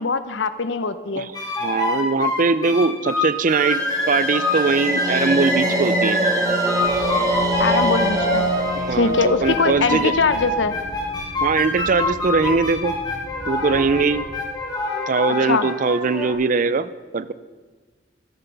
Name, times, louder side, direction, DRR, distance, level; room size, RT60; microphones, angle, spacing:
voice 1, 0.0-1.3 7.6-8.5 8.9-10.7 15.5-15.7, left 4 dB, 85° left, 12 dB, 0.8 m, -22 dB
sound 1, 1.3-16.3, left 1 dB, 20° left, 2.6 m, -25 dB
voice 2, 1.6-3.8 4.1-6.2 8.8-10.1 11.4-12.9 13.5-14.3 15.1-17.3, right 4 dB, 45° right, 16 dB, 0.5 m, -21 dB
sound 2, 3.5-10.7, right 1 dB, 20° right, 1.3 m, -25 dB
sound 3, 6.8-14.4, right 1 dB, 90° right, 3.0 m, -39 dB
13.0 x 10.0 x 5.4 m, 1.4 s
head